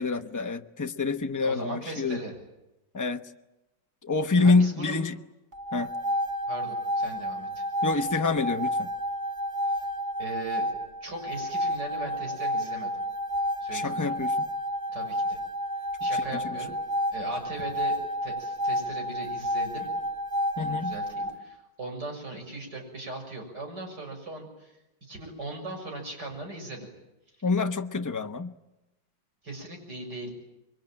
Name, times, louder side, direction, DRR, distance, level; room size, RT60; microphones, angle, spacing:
voice 1, 0.0-2.2 2.9-3.2 4.0-5.1 5.7-5.9 7.8-8.9 13.7-14.3 16.3-16.4 20.6-20.9 27.4-28.5, left 4 dB, 20° left, 7 dB, 0.6 m, -26 dB
voice 2, 1.3-2.3 4.4-5.0 6.5-7.7 10.2-10.7 11.0-12.9 13.6-14.2 14.9-15.4 16.0-16.8 17.1-18.0 18.2-19.9 20.6-26.9 27.3-27.5 29.4-30.3, right 2 dB, 60° right, 3 dB, 7.1 m, -39 dB
sound 1, 5.5-21.3, equal, 25° right, 3.4 m, -30 dB
27.0 x 23.0 x 9.1 m, 0.97 s
omnidirectional pair, 2.1 m